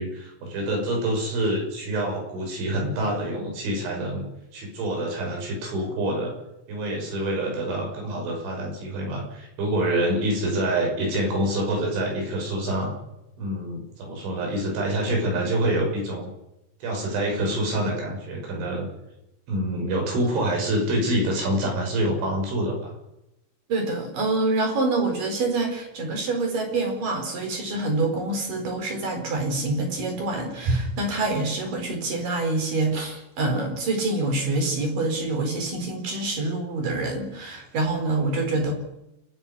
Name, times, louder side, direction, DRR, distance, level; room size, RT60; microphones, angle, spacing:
voice 1, 0.0-4.3 4.5-6.3 6.7-12.9 13.4-16.3 16.8-18.9 19.5-22.9, right 1 dB, 70° right, 1 dB, 8.6 m, -26 dB
voice 2, 23.7-38.7, right 2 dB, 45° right, 4 dB, 5.6 m, -26 dB
29.5 x 10.0 x 9.8 m, 0.89 s
omnidirectional pair, 5.7 m